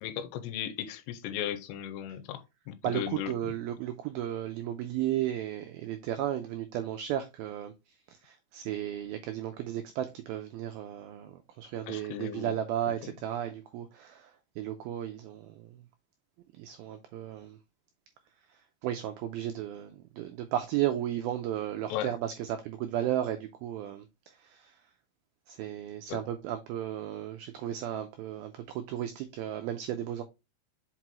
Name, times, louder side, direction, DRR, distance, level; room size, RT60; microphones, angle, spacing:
voice 1, 0.0-3.5 11.9-12.6 12.9-13.1 21.9-22.1 26.1-26.2, left 11 dB, 85° left, 2.8 m, -37 dB
voice 2, 2.8-7.7 8.1-15.8 16.6-17.6 18.5-24.8 25.5-30.2, right 11 dB, 90° right, 2.1 m, -34 dB
6.0 x 5.5 x 2.9 m
omnidirectional pair, 5.0 m